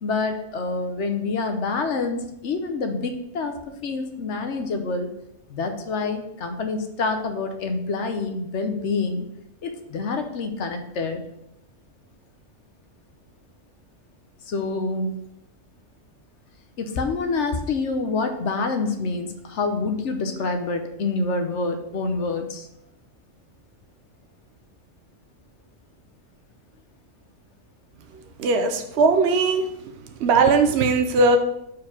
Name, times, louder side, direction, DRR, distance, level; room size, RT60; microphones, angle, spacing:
voice 1, 0.0-5.1 5.5-9.2 9.6-11.2 14.4-15.1 16.8-22.7, left 3 dB, 65° left, 6 dB, 1.1 m, -27 dB
voice 2, 28.4-29.7 30.2-31.4, right 4 dB, 60° right, 5 dB, 0.9 m, -19 dB
4.7 x 4.7 x 5.7 m, 0.80 s
omnidirectional pair, 1.3 m